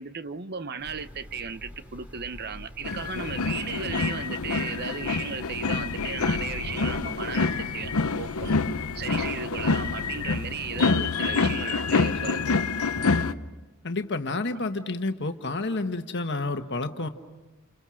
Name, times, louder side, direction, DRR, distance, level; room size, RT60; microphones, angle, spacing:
voice 1, 0.0-8.6 8.9-12.5, right 6 dB, 45° right, 0.8 m, -35 dB
sound 1, 0.8-10.8, equal, 5° right, 2.6 m, -46 dB
sound 2, 2.8-13.3, left 4 dB, 75° left, 0.8 m, -27 dB
voice 2, 13.8-17.1, left 2 dB, 50° left, 1.4 m, -29 dB
30.0 x 29.5 x 6.4 m
head